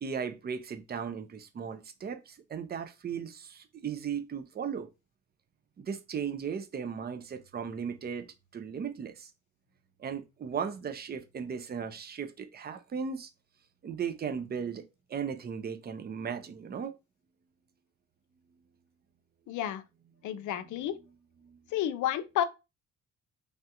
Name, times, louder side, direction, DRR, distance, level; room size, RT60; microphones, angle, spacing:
voice 1, 0.0-4.9 5.8-8.3 8.5-9.3 10.0-13.3 13.8-14.8 15.1-16.9 20.5-20.7 21.4-21.6, right 7 dB, 35° right, 0.5 m, -36 dB
voice 2, 19.5-19.8 20.2-21.0 21.7-22.4, left 11 dB, 75° left, 0.5 m, -31 dB
3.4 x 2.3 x 2.8 m
cardioid pair, 90°, 30 cm